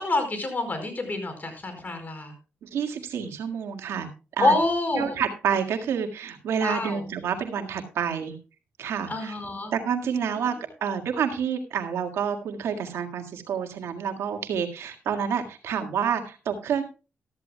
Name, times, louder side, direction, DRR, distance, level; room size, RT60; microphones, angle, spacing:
voice 1, 0.0-2.3 4.4-5.2 6.6-7.0 9.1-9.7 10.3-10.4, left 2 dB, 40° left, 6 dB, 4.9 m, -27 dB
voice 2, 2.6-4.1 4.4-4.5 4.9-8.4 8.8-9.4 9.7-10.6 10.8-16.8, right 7 dB, 85° right, 5 dB, 1.8 m, -28 dB
14.0 x 13.5 x 2.2 m, 0.32 s
cardioid pair, 60°, 4 cm